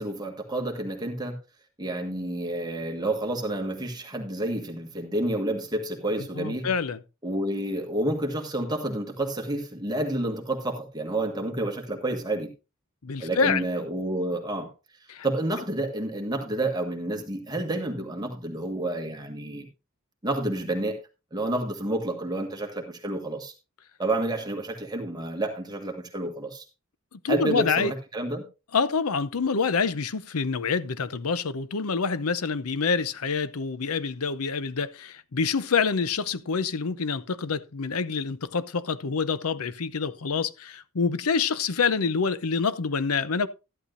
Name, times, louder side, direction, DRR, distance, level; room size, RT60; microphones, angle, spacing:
voice 1, 0.0-1.4 1.8-6.7 7.2-12.5 13.2-14.7 15.2-19.7 20.2-21.0 21.3-23.5 24.0-26.6 27.3-28.4, right 1 dB, 20° right, 1.6 m, -29 dB
voice 2, 6.4-7.0 13.0-13.6 15.1-15.3 27.1-27.9 28.7-43.5, left 5 dB, 90° left, 0.7 m, -27 dB
13.5 x 11.5 x 2.6 m
head